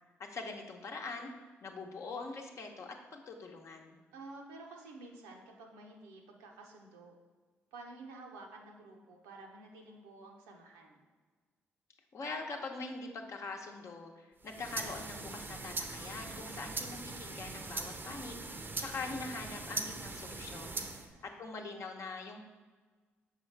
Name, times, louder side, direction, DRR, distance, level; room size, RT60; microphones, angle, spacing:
voice 1, 0.3-1.3 1.6-4.0 12.1-21.0 21.4-22.4, left 3 dB, 55° left, 2 dB, 0.9 m, -43 dB
voice 2, 4.1-7.1 7.7-11.0 20.6-21.5, right 2 dB, 80° right, 1 dB, 0.8 m, -51 dB
sound 1, 14.4-21.1, right 3 dB, 35° right, 0.6 m, -41 dB
6.3 x 4.7 x 3.3 m, 1.4 s
hypercardioid pair, 45°, 6 cm